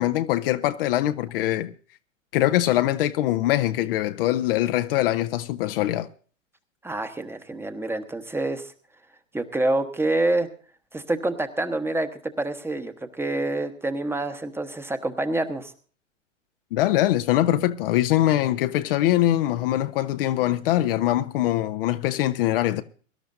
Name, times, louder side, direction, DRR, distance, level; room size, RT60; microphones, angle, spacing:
voice 1, 0.0-1.7 2.3-6.1 16.7-22.8, left 14 dB, 45° left, 0.8 m, -23 dB
voice 2, 6.8-8.7 9.3-10.5 10.9-15.7, right 2 dB, 5° right, 1.1 m, -27 dB
23.5 x 12.5 x 2.6 m
figure-of-eight pair, 100°, 39 cm